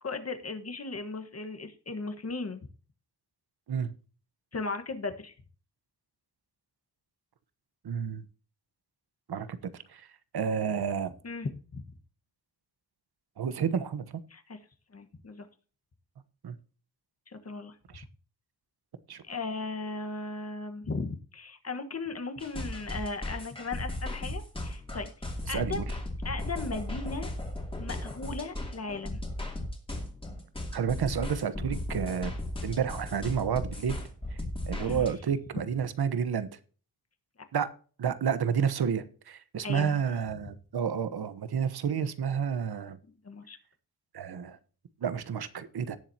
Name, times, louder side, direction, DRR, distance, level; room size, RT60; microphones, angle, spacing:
voice 1, 0.0-2.7 4.5-5.3 11.2-11.8 14.3-14.6 14.9-15.5 17.3-17.8 19.2-25.8 26.2-27.3 27.7-29.2 34.8-35.1 39.6-40.0 43.2-43.6, left 3 dB, 40° left, 8 dB, 1.4 m, -37 dB
voice 2, 7.8-8.2 9.3-10.1 10.3-11.1 13.4-14.0 16.4-16.5 17.9-18.0 19.1-19.2 25.5-25.8 30.7-32.3 32.6-34.0 34.7-36.5 37.5-37.7 38.0-43.0 44.1-44.6 45.0-46.0, right 7 dB, 80° right, 13 dB, 1.1 m, -30 dB
sound 1, 22.4-35.1, left 1 dB, 15° left, 2.7 m, -36 dB
17.5 x 7.5 x 2.8 m, 0.40 s
wide cardioid pair, 155°, 38 cm